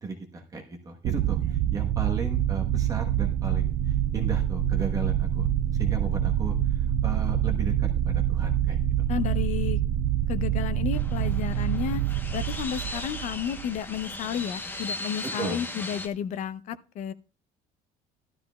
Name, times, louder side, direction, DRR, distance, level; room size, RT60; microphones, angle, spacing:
voice 1, 0.0-5.5 5.8-6.5 7.0-8.8 15.4-15.6, right 4 dB, 20° right, 1.1 m, -35 dB
sound 1, 1.0-14.0, right 10 dB, 65° right, 0.5 m, -26 dB
voice 2, 9.1-9.8 10.3-12.0 12.3-17.1, left 9 dB, 45° left, 0.5 m, -32 dB
sound 2, 10.9-16.1, left 2 dB, 10° left, 0.9 m, -37 dB
13.0 x 12.0 x 2.3 m
cardioid pair, 175°, 17 cm